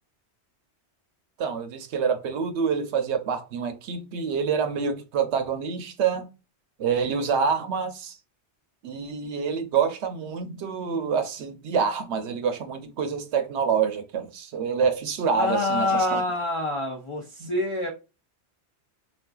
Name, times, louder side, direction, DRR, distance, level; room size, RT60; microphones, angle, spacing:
voice 1, 1.4-6.3 6.8-8.2 8.8-16.2 17.4-17.5, right 6 dB, 75° right, 0.8 m, -27 dB
voice 2, 15.4-17.9, left 2 dB, 50° left, 0.3 m, -26 dB
3.7 x 2.5 x 2.2 m
omnidirectional pair, 1.2 m